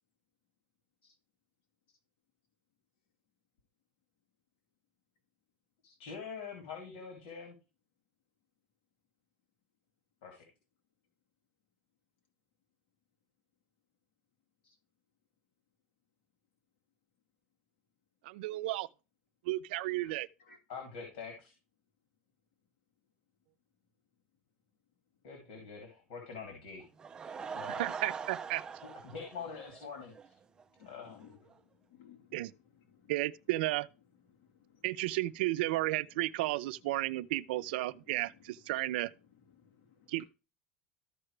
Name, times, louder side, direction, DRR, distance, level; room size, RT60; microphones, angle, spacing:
voice 1, 5.8-7.5 10.2-10.4 20.7-21.5 25.2-26.8 27.5-27.9 28.8-30.3 30.8-31.2, left 5 dB, 90° left, 3.0 m, -45 dB
voice 2, 18.2-18.9 19.5-20.3 27.8-28.6 32.3-32.5 33.1-33.9 34.8-39.1 40.1-40.3, right 17 dB, 85° right, 0.5 m, -33 dB
Laughter / Crowd, 26.8-30.3 30.6-30.7 31.2-31.3 31.5-31.6, right 6 dB, 15° right, 0.4 m, -43 dB
voice 3, 30.8-31.4 31.9-33.1 34.3-34.9 39.5-40.3, left 7 dB, 60° left, 2.5 m, -59 dB
14.0 x 4.9 x 3.3 m
cardioid pair, 170°, 5 cm